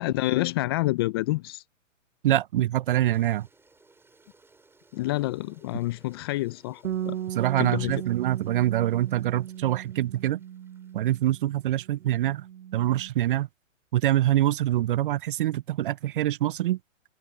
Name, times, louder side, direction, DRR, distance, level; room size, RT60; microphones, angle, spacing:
voice 1, 0.0-1.6 4.9-7.2 7.6-8.0, left 18 dB, 20° left, 0.4 m, -28 dB
voice 2, 2.2-3.5 7.3-10.4 10.9-12.4 12.7-13.5 13.9-16.8, right 13 dB, 45° right, 0.5 m, -25 dB
Toilet flush, 2.9-12.2, right 3 dB, 5° right, 6.6 m, -62 dB
Bass guitar, 6.8-11.5 11.8-13.1, right 10 dB, 75° right, 1.1 m, -37 dB
hypercardioid pair, 130°, 39 cm